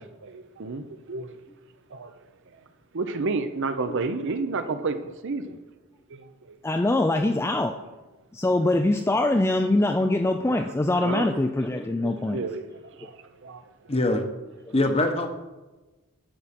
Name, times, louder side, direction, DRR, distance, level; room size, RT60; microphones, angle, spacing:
voice 1, 0.0-1.4 1.9-2.1 2.5-2.6 2.9-5.6 6.1-6.6 10.5-10.7 11.0-11.4 11.8-13.9 14.7-14.9, right 3 dB, 55° right, 10 dB, 0.7 m, -32 dB
voice 2, 6.6-7.8 8.3-12.4, left 2 dB, 10° left, 5 dB, 0.3 m, -23 dB
voice 3, 13.9-14.3 14.7-15.3, left 2 dB, 30° left, 6 dB, 0.9 m, -23 dB
12.0 x 5.9 x 4.3 m, 1.1 s
head